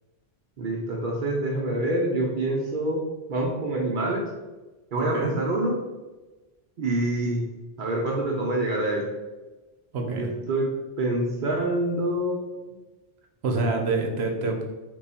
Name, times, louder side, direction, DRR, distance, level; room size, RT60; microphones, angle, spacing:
voice 1, 0.6-3.0 3.3-4.2 4.9-5.7 6.8-7.4 7.8-9.0 10.1-10.6 11.0-12.7, right 1 dB, 55° right, -2 dB, 0.7 m, -26 dB
voice 2, 5.0-5.3 9.9-10.3 13.4-14.7, right 3 dB, 85° right, 3 dB, 0.9 m, -27 dB
3.0 x 2.3 x 4.1 m, 1.2 s
omnidirectional pair, 1.1 m